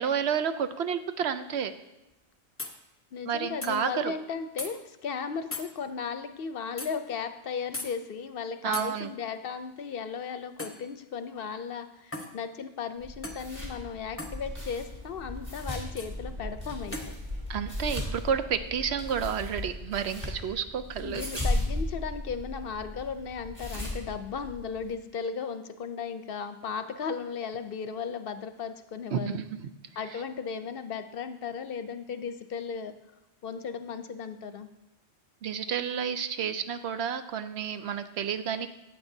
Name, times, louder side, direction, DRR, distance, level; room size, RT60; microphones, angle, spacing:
voice 1, 0.0-1.7 3.3-4.1 8.6-9.1 17.5-21.3 29.1-29.7 30.1-30.2 35.4-38.7, right 7 dB, 75° right, 10 dB, 0.9 m, -30 dB
sound 1, 2.1-2.2 2.6-2.8 3.6-3.7 4.6-4.7 5.5-5.7 6.8-6.9 7.7-7.9 8.7-8.9 10.6-10.8 12.1-12.3 13.2-13.5 14.2-14.4 16.0-16.1 16.9-17.1, left 2 dB, 15° left, 0.8 m, -37 dB
voice 2, 3.1-17.0 21.0-29.4 30.0-32.9 33.4-34.7, left 6 dB, 60° left, 9 dB, 0.7 m, -36 dB
sound 2, 13.0-24.9, left 1 dB, 30° right, 3.5 m, -37 dB
sound 3, 14.3-19.8, left 1 dB, 45° right, 1.7 m, -41 dB
14.0 x 8.7 x 2.7 m, 0.98 s
omnidirectional pair, 1.1 m